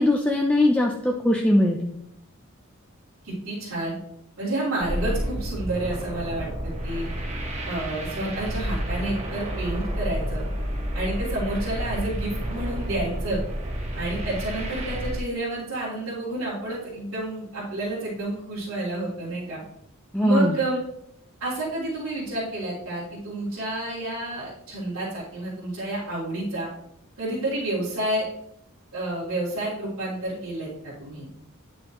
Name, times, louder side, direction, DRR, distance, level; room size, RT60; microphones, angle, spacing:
voice 1, 0.0-2.0 20.1-20.5, left 1 dB, 5° left, 0 dB, 0.5 m, -20 dB
voice 2, 3.2-3.9 4.4-7.0 7.6-10.4 10.9-13.4 13.9-19.6 20.2-20.8 21.4-26.7 27.2-28.3 28.9-31.3, right 1 dB, 75° right, -10 dB, 3.2 m, -30 dB
sound 1, 4.8-15.2, equal, 30° right, 1.2 m, -30 dB
9.8 x 6.2 x 3.0 m, 0.76 s
head